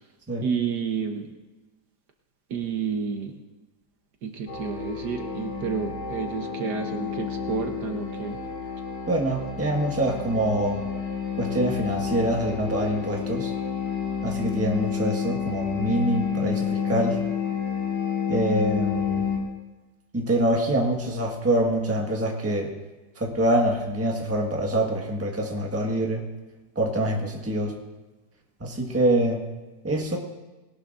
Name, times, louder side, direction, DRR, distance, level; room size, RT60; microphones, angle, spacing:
voice 1, 0.4-1.3 2.5-3.3 4.2-8.4, right 6 dB, 65° right, 4 dB, 1.5 m, -30 dB
sound 1, 4.5-19.4, left 6 dB, 75° left, 2.8 m, -30 dB
voice 2, 9.1-10.8 11.4-13.5 14.2-17.2 18.3-19.3 20.1-22.7 23.2-26.2 26.7-27.8 28.6-29.4 29.8-30.2, right 1 dB, 10° right, 0 dB, 1.3 m, -25 dB
20.5 x 18.0 x 2.6 m, 1.2 s
omnidirectional pair, 2.1 m